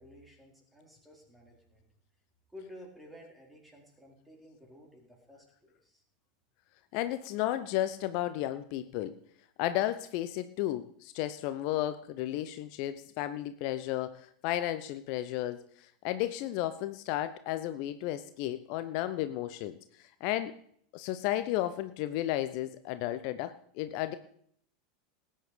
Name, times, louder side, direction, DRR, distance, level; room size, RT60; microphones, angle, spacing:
voice 1, 0.0-1.8 2.5-6.0, left 1 dB, 10° right, 1 dB, 4.4 m, -53 dB
voice 2, 6.9-9.2 9.6-20.5 20.9-24.2, left 13 dB, 50° left, 12 dB, 0.7 m, -33 dB
18.5 x 8.9 x 5.1 m, 0.65 s
figure-of-eight pair, 80°, 0 cm